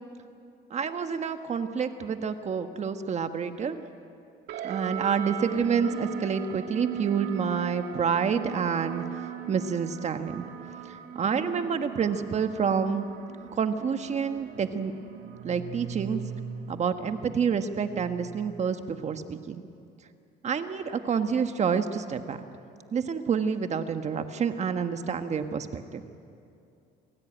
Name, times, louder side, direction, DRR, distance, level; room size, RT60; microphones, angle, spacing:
voice 1, 0.7-3.8 4.6-9.0 9.5-10.5 10.9-13.1 13.5-14.9 15.4-16.2 16.7-19.6 20.4-22.4 22.9-26.0, right 6 dB, 40° right, 8 dB, 1.3 m, -28 dB
sound 1, 4.5-19.2, right 9 dB, 75° right, 1.9 m, -39 dB
28.0 x 16.5 x 9.0 m, 2.5 s
cardioid pair, 110°, 17 cm